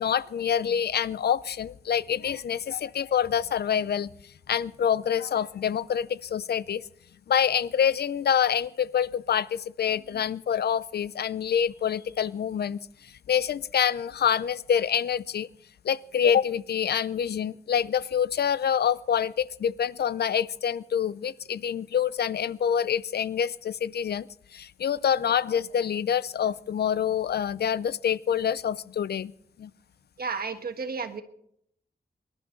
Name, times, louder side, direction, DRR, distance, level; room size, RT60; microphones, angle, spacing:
voice 1, 0.0-4.1 4.5-6.8 7.3-12.8 13.3-15.5 15.8-24.3 24.5-29.3 29.6-29.7, left 8 dB, 85° left, 19 dB, 0.5 m, -26 dB
voice 2, 30.2-31.2, right 5 dB, 70° right, 7 dB, 1.4 m, -32 dB
24.0 x 11.5 x 3.9 m, 0.71 s
wide cardioid pair, 125°, 16 cm